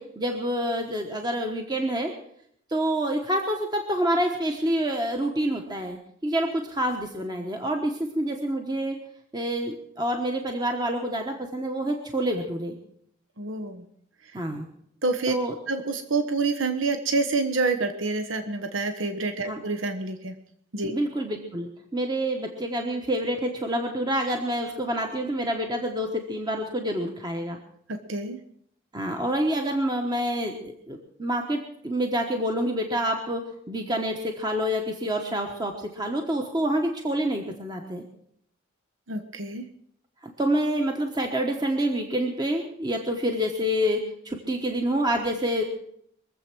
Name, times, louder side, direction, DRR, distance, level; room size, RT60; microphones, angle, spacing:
voice 1, 0.0-2.1 2.7-9.0 9.3-12.7 14.3-14.6 15.3-15.5 19.4-19.6 20.9-27.6 28.9-33.4 33.7-38.0 40.2-45.6, equal, 20° right, 3 dB, 1.2 m, -27 dB
voice 2, 13.4-13.8 15.0-15.3 15.7-20.3 20.7-20.9 27.9-28.4 39.1-39.7, right 3 dB, 75° right, 7 dB, 1.1 m, -27 dB
23.0 x 7.7 x 6.2 m, 0.71 s
head